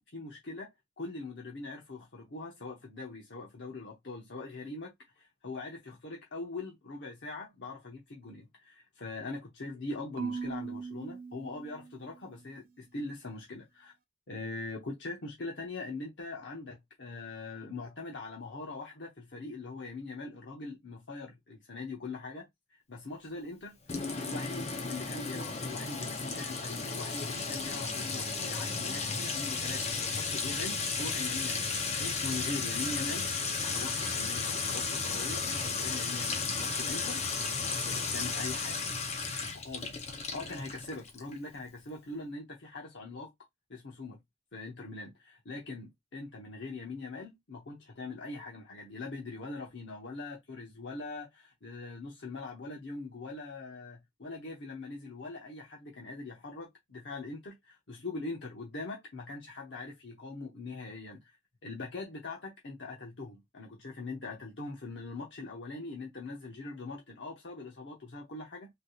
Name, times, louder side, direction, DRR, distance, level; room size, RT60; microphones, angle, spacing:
voice 1, 0.1-0.7 1.0-4.9 5.2-13.9 14.3-22.5 22.9-23.8 24.2-31.7 32.0-33.3 33.5-37.2 37.5-38.8 39.5-43.3 43.7-44.2 44.5-61.2 61.6-68.7, left 3 dB, 90° left, 0.9 m, -42 dB
Marimba xylophone / Wood, 10.2-12.4, right 5 dB, 50° right, 0.4 m, -39 dB
Sink (filling or washing) / Trickle dribble / Fill (with liquid), 23.9-41.3, left 4 dB, 35° left, 0.6 m, -34 dB
3.4 x 2.9 x 2.3 m
head